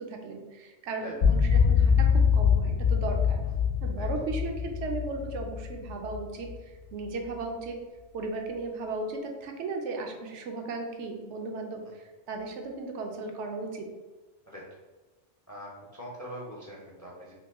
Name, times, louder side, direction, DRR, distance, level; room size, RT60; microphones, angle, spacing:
voice 1, 0.0-3.4 3.8-7.8 8.1-13.9, right 3 dB, 80° right, 3 dB, 0.9 m, -36 dB
sound 1, 1.2-6.6, left 6 dB, 65° left, 0.9 m, -24 dB
voice 2, 15.5-17.3, equal, 25° left, -4 dB, 0.4 m, -43 dB
2.9 x 2.7 x 3.4 m, 1.2 s
omnidirectional pair, 1.2 m